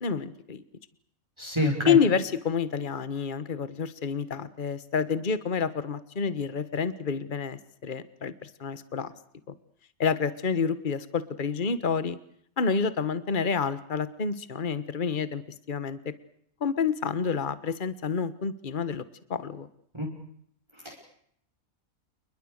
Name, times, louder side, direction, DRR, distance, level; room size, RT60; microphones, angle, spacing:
voice 1, 0.0-0.6 1.8-9.1 9.5-9.6 10.0-12.2 12.6-15.4 15.7-16.1 16.6-19.0 19.3-19.7, left 6 dB, 35° left, 14 dB, 1.5 m, -28 dB
voice 2, 1.4-2.0 19.9-20.1 20.8-20.9, left 1 dB, 20° right, 0 dB, 5.9 m, -27 dB
29.0 x 22.0 x 6.6 m, 0.67 s
omnidirectional pair, 1.5 m